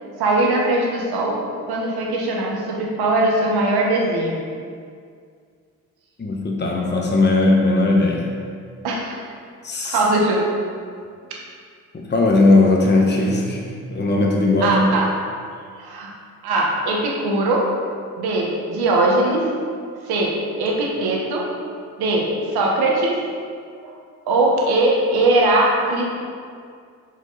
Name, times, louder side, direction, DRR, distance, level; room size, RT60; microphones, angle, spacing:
voice 1, 0.2-1.4 1.7-4.5 8.8-9.2 9.8-10.4 14.6-15.1 15.8-16.1 16.4-17.6 18.2-19.5 20.0-20.3 20.6-21.4 22.0-22.3 22.5-23.2 23.8-23.9 24.3-26.2, right 2 dB, 80° right, -2 dB, 1.4 m, -20 dB
voice 2, 6.2-8.3 9.6-10.0 11.9-14.8, left 2 dB, 30° left, -1 dB, 1.1 m, -18 dB
6.3 x 5.3 x 4.1 m, 2.2 s
supercardioid pair, 60°, 37 cm